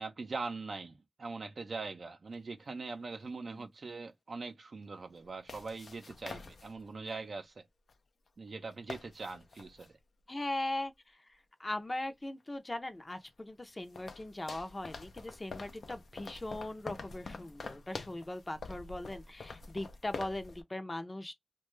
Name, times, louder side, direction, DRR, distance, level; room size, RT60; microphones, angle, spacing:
voice 1, 0.0-7.6 8.4-10.0, right 3 dB, 75° right, 0.5 m, -42 dB
sound 1, 2.3-2.4 5.2-7.1 7.9-8.0 8.3-8.4 8.6-9.9 12.4-12.5 13.1-20.6, left 4 dB, 85° left, 0.4 m, -47 dB
voice 2, 10.3-10.9 11.6-21.3, left 1 dB, 35° left, 0.5 m, -39 dB
2.5 x 2.2 x 3.0 m
cardioid pair, 45°, 0 cm